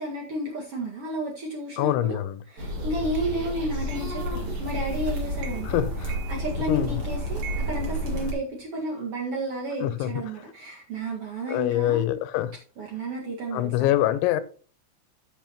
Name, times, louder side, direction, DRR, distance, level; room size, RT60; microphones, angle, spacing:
voice 1, 0.0-12.2 12.8-13.9, right 1 dB, 70° right, 1.4 m, -32 dB
voice 2, 1.8-2.4 5.6-6.2 6.7-7.0 9.8-10.4 11.5-12.5 13.5-14.4, left 14 dB, 85° left, 2.9 m, -25 dB
sound 1, 2.6-8.3, equal, 35° right, 2.2 m, -30 dB
sound 2, 3.2-3.3 3.9-4.2 4.7-5.0 5.4-5.8 6.1-6.9 7.4-8.7, right 9 dB, 90° right, 3.9 m, -44 dB
13.5 x 7.0 x 2.9 m
omnidirectional pair, 5.6 m